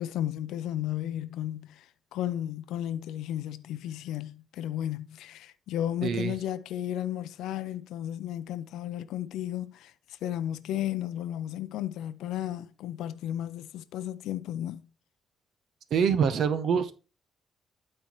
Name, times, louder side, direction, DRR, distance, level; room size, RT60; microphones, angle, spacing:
voice 1, 0.0-14.8, left 11 dB, 85° left, 0.5 m, -34 dB
voice 2, 6.0-6.3 15.9-16.9, right 7 dB, 70° right, 0.8 m, -25 dB
12.0 x 4.3 x 3.1 m
cardioid pair, 90°, 0 cm